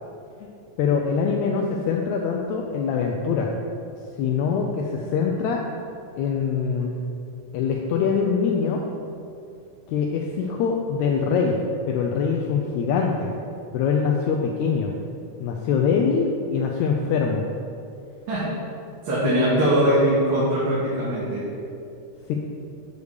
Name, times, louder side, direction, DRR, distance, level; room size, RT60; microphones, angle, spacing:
voice 1, 0.8-3.5 4.2-5.6 6.2-7.0 7.5-8.8 9.9-11.6 11.9-13.3 13.7-14.9 15.4-17.4 19.2-19.7 22.3-22.4, left 6 dB, 85° left, 1 dB, 1.6 m, -23 dB
voice 2, 19.0-21.4, right 1 dB, 80° right, -11 dB, 3.3 m, -21 dB
8.1 x 3.5 x 6.4 m, 2.6 s
omnidirectional pair, 3.8 m